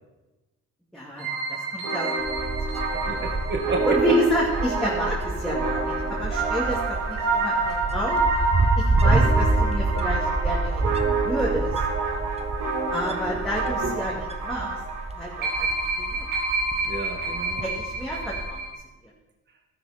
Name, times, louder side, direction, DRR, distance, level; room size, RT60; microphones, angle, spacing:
voice 1, 0.9-2.3 2.9-3.1 3.9-6.8 7.1-8.3 8.8-10.9 11.2-11.7 12.9-14.7 15.1-15.7 16.0-16.3 17.6-18.6, equal, ahead, -5 dB, 2.6 m, -29 dB
sound 1, 1.2-18.7, right 3 dB, 85° right, 3.3 m, -28 dB
Wind, 2.2-18.5, right 2 dB, 20° right, 1.0 m, -28 dB
voice 2, 3.1-4.2 13.8-13.9 16.8-17.6, right 2 dB, 35° right, 1 dB, 1.9 m, -31 dB
13.0 x 12.0 x 4.4 m, 1.1 s
cardioid pair, 90°, 30 cm